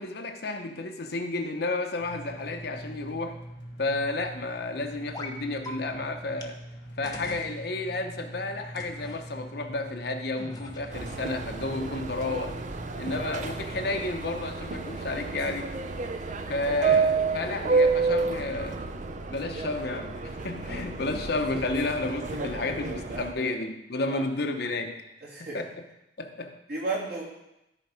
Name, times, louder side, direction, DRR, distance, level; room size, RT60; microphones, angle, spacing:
voice 1, 0.0-3.4 3.8-6.6 7.0-12.5 13.0-15.7 16.5-18.8 19.3-25.0 25.4-25.7 26.2-26.5, left 2 dB, 60° left, 5 dB, 0.8 m, -32 dB
sound 1, 2.0-13.9, right 1 dB, 90° left, 1.7 m, -43 dB
sound 2, 5.1-5.4 5.6-5.7 6.4-6.5 7.0-7.5 8.8-9.2 10.4-11.1, left 2 dB, 20° left, 0.8 m, -41 dB
Subway metro underground, 10.9-23.3, right 4 dB, 40° right, 0.6 m, -30 dB
voice 2, 22.3-23.5 24.1-24.2 25.2-25.6 26.7-27.2, right 3 dB, 60° right, -5 dB, 3.1 m, -35 dB
13.0 x 4.5 x 5.1 m, 0.90 s
head